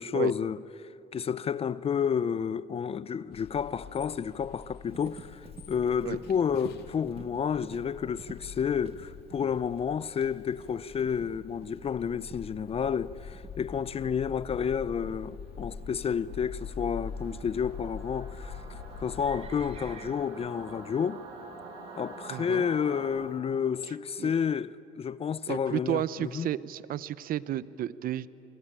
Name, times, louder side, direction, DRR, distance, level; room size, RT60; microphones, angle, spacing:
voice 1, 0.0-21.2 21.9-26.5, left 7 dB, 35° left, 0.6 m, -30 dB
sound 1, 3.3-19.9, left 6 dB, 80° left, 1.8 m, -44 dB
Livestock farm animals working animals, 4.9-23.4, right 5 dB, 35° right, 1.7 m, -52 dB
Singing / Musical instrument, 15.8-23.0, right 3 dB, 80° right, 7.3 m, -47 dB
voice 2, 22.3-22.7 24.2-24.3 25.5-28.3, right 12 dB, 60° right, 0.7 m, -32 dB
26.5 x 25.5 x 8.9 m
cardioid pair, 110°, 17 cm